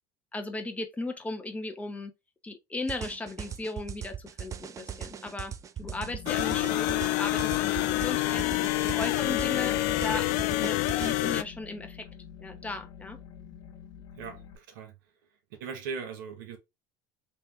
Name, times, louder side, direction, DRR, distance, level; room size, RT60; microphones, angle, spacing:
voice 1, 0.3-2.1 2.4-5.5 5.8-8.5 8.8-10.3 10.6-12.1 12.4-13.2, left 2 dB, 15° left, 0.8 m, -36 dB
sound 1, 2.9-11.1, right 8 dB, 30° right, 0.4 m, -40 dB
sound 2, 5.8-14.6, left 8 dB, 50° left, 1.1 m, -47 dB
sound 3, 6.3-11.4, left 19 dB, 75° left, 0.4 m, -27 dB
voice 2, 14.2-14.9 15.5-16.6, right 5 dB, 85° right, 1.1 m, -39 dB
3.3 x 3.1 x 3.2 m
supercardioid pair, 100°, 10 cm